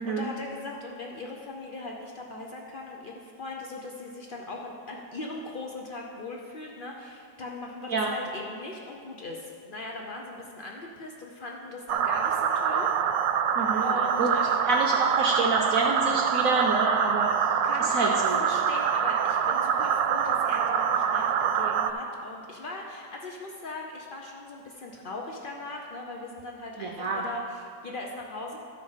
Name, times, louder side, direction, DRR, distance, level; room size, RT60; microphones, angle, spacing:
voice 1, 0.0-12.9 13.8-14.7 17.6-28.6, left 2 dB, 85° left, 0 dB, 0.4 m, -39 dB
sound 1, 11.9-21.9, right 7 dB, 80° right, 1.2 m, -25 dB
voice 2, 13.6-13.9 14.2-14.3 14.7-17.3 17.9-18.4 26.8-27.2, right 3 dB, 60° right, 0 dB, 0.9 m, -27 dB
13.5 x 4.9 x 5.5 m, 2.3 s
omnidirectional pair, 1.9 m